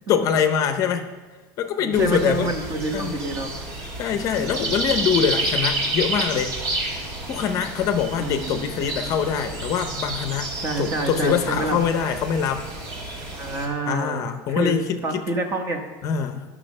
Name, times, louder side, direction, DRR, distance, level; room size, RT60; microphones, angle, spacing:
voice 1, 0.1-1.1 1.6-2.5 2.9-3.1 4.0-6.6 7.3-10.5 10.8-12.6 13.9-15.2 16.0-16.4, left 8 dB, 35° left, 8 dB, 0.6 m, -24 dB
voice 2, 1.8-3.5 8.2-8.7 10.6-11.8 13.3-14.8 15.0-15.9, right 2 dB, 25° right, 5 dB, 1.0 m, -27 dB
sound 1, 1.9-13.7, right 2 dB, 60° right, 2.2 m, -30 dB
11.5 x 6.1 x 6.5 m, 1.3 s
cardioid pair, 175°, 10 cm